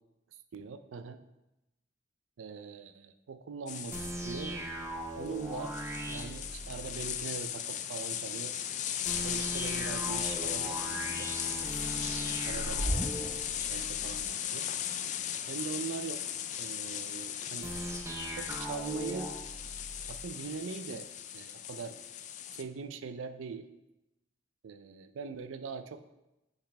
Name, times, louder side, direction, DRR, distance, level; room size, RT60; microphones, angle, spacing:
voice 1, 0.5-1.2 2.4-4.6 5.2-8.5 9.2-11.3 12.0-14.7 15.5-17.7 18.4-19.3 20.1-22.0 22.5-23.7 24.6-26.0, right 5 dB, 90° right, 10 dB, 0.4 m, -42 dB
sound 1, 3.7-22.6, left 10 dB, 40° left, 0.3 m, -37 dB
sound 2, 3.9-7.2 9.0-14.3 17.6-20.3, right 1 dB, 15° right, 0.6 m, -38 dB
6.8 x 5.0 x 3.2 m, 0.96 s
head